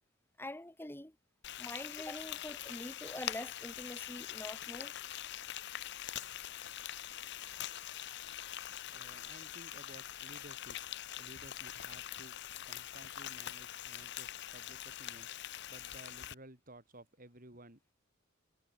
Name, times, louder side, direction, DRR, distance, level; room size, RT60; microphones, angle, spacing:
voice 1, 0.4-1.2 1.6-4.9, left 1 dB, 10° left, 2.0 m, -45 dB
Frying (food), 1.4-16.3, left 12 dB, 60° left, 0.8 m, -44 dB
voice 2, 8.9-10.8 11.2-12.3 12.6-17.9, right 1 dB, 45° right, 8.0 m, -56 dB
head